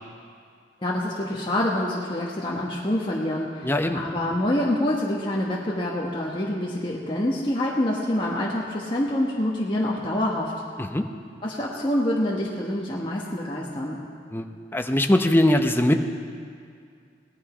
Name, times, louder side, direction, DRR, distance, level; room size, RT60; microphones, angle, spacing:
voice 1, 0.8-10.5 11.4-14.0, left 1 dB, 30° left, -4 dB, 1.2 m, -26 dB
voice 2, 3.6-4.0 10.8-11.1 14.3-14.5 14.7-16.0, left 1 dB, 10° left, 6 dB, 0.7 m, -21 dB
17.5 x 11.5 x 5.0 m, 2.2 s
head